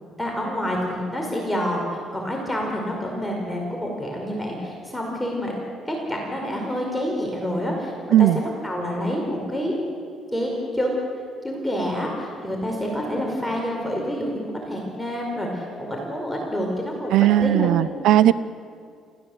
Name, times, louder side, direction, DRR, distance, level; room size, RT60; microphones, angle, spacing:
voice 1, 0.2-5.5 5.9-7.9 8.2-9.7 10.3-11.1 11.4-17.7, equal, 5° left, -1 dB, 5.1 m, -27 dB
voice 2, 17.1-18.3, right 12 dB, 80° right, 17 dB, 0.5 m, -17 dB
28.5 x 15.5 x 8.1 m, 2.2 s
cardioid pair, 90°, 0 cm